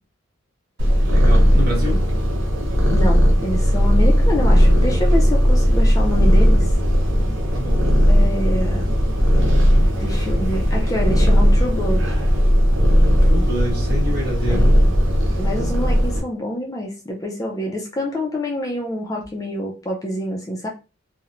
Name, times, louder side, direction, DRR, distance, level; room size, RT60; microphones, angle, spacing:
Purr, 0.8-16.2, equal, 70° right, 0.7 m, -16 dB
voice 1, 1.0-2.0 7.5-7.9 13.2-14.8, equal, 50° right, 1.1 m, -27 dB
voice 2, 2.9-6.7 8.1-8.9 10.0-12.1 14.5-14.7 15.4-20.7, left 1 dB, 15° left, 0.3 m, -27 dB
2.9 x 2.0 x 2.5 m
head